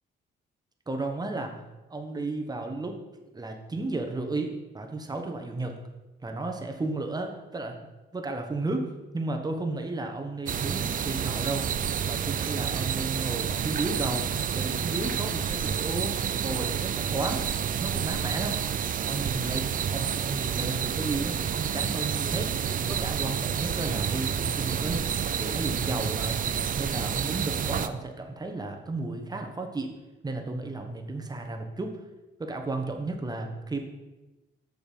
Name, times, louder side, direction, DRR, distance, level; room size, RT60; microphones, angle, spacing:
voice 1, 0.9-1.6 1.9-3.0 3.3-5.8 6.2-7.7 8.1-11.7 12.1-14.3 14.5-17.5 17.8-18.6 19.0-22.5 22.9-26.4 26.8-30.0 30.2-31.9 32.4-33.8, right 2 dB, 20° right, 3 dB, 1.3 m, -33 dB
sound 1, 10.5-27.9, right 8 dB, 45° right, 0.5 m, -29 dB
7.1 x 6.7 x 5.3 m, 1.1 s
cardioid pair, 90°, 20 cm